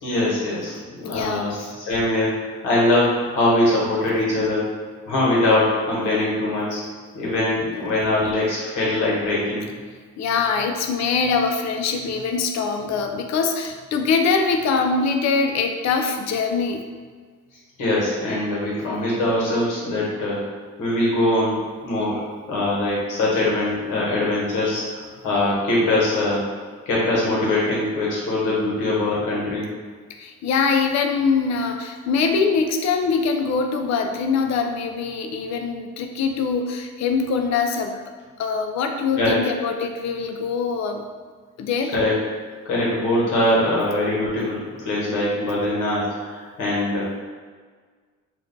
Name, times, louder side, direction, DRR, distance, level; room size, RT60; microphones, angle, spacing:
voice 1, 0.0-4.7 5.1-6.8 7.1-9.7 17.8-26.5 26.9-29.7 39.2-39.4 41.9-42.2 42.6-47.2, left 1 dB, 90° left, -6 dB, 1.2 m, -22 dB
voice 2, 1.0-1.7 7.3-8.0 10.2-16.8 30.2-38.0 38.4-41.0 41.6-42.0, left 5 dB, 65° left, 4 dB, 0.5 m, -23 dB
2.6 x 2.2 x 3.8 m, 1.5 s
cardioid pair, 90°, 30 cm